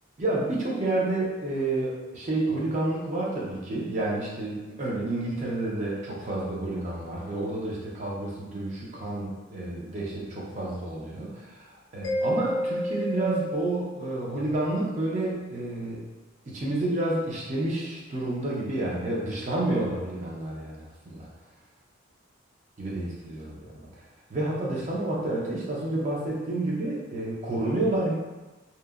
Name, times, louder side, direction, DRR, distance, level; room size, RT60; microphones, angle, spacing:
voice 1, 0.2-16.0 16.5-21.3 22.8-23.9 24.3-28.1, right 2 dB, 35° right, -5 dB, 0.4 m, -30 dB
Mallet percussion, 12.0-14.6, equal, 75° left, 0.4 m, -31 dB
2.8 x 2.0 x 2.3 m, 1.2 s
head